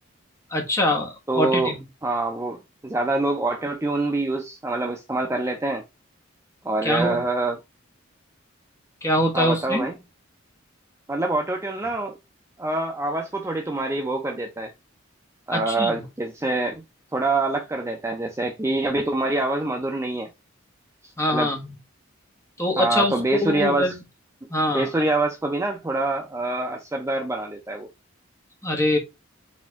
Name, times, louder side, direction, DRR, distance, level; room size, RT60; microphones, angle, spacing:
voice 1, 0.5-1.1 1.3-1.8 6.8-7.2 9.0-9.9 15.5-15.9 21.2-21.6 22.6-23.1 23.4-23.9 24.5-24.8 28.6-29.0, left 1 dB, 15° left, 1.1 m, -23 dB
voice 2, 1.3-1.7 2.0-5.8 6.6-7.6 9.3-10.0 11.1-12.2 12.6-14.7 15.5-16.8 17.1-20.3 21.3-21.5 22.8-24.0 24.7-27.9, right 2 dB, 15° right, 0.4 m, -25 dB
4.3 x 3.4 x 3.5 m
head